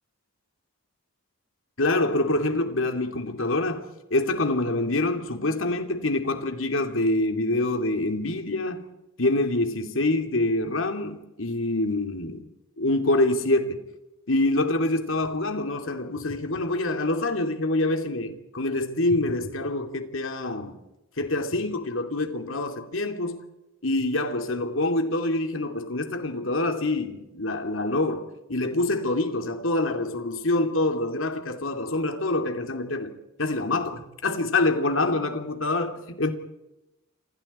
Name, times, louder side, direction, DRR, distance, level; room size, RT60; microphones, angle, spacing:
voice 1, 1.8-8.8 9.2-12.4 12.8-13.8 14.3-20.8 21.2-23.5 23.8-36.3, left 2 dB, 70° left, 2.7 m, -26 dB
30.0 x 27.0 x 4.4 m
head